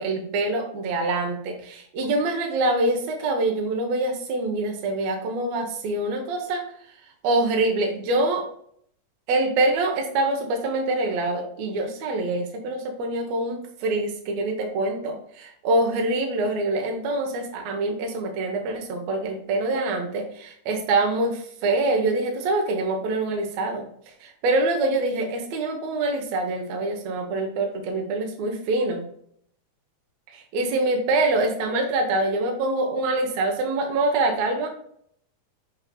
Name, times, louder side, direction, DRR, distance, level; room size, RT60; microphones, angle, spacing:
voice 1, 0.0-6.6 7.2-8.4 9.3-23.9 24.2-29.1 30.3-34.7, right 2 dB, 65° right, 2 dB, 2.1 m, -25 dB
6.4 x 6.3 x 2.3 m, 0.65 s
omnidirectional pair, 3.6 m